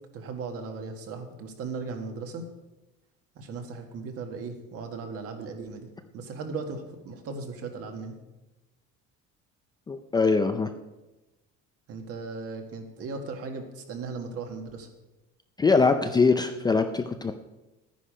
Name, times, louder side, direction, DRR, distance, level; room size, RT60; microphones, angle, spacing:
voice 1, 0.1-2.5 3.4-5.9 6.1-8.1 11.9-14.9, right 4 dB, 50° right, 5 dB, 1.7 m, -37 dB
voice 2, 9.9-10.7 15.6-17.3, left 4 dB, 15° left, 7 dB, 0.4 m, -22 dB
12.0 x 10.0 x 5.1 m, 1.0 s
cardioid pair, 155°, 30 cm